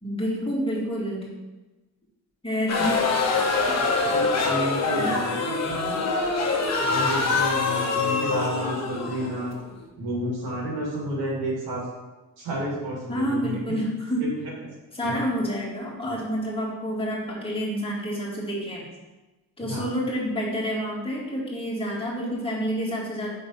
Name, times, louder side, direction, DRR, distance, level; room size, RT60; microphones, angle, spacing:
voice 1, 0.0-1.3 2.4-3.0 3.7-3.8 5.0-5.2 13.1-14.3 14.9-18.9 19.6-23.4, equal, 15° left, -5 dB, 1.9 m, -28 dB
sound 1, 2.7-9.8, left 4 dB, 45° left, 1.0 m, -25 dB
voice 2, 4.1-6.0 6.8-9.6 10.0-11.9 12.4-13.6 14.2-14.7 15.0-15.1 19.6-19.9, equal, 80° right, -3 dB, 2.1 m, -31 dB
5.4 x 3.8 x 5.4 m, 1.1 s
cardioid pair, 110°, 36 cm